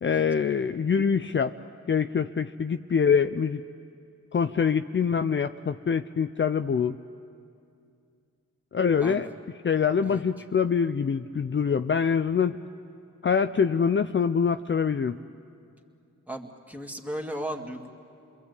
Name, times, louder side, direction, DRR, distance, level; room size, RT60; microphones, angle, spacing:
voice 1, 0.0-1.5 1.9-3.6 4.3-7.0 8.7-9.3 9.6-12.6 13.2-15.2, left 6 dB, 40° left, 9 dB, 0.6 m, -24 dB
voice 2, 9.0-9.3 10.0-10.2 16.3-17.9, right 1 dB, 5° right, 3 dB, 2.3 m, -36 dB
28.5 x 22.0 x 8.2 m, 2.4 s
cardioid pair, 55°, 29 cm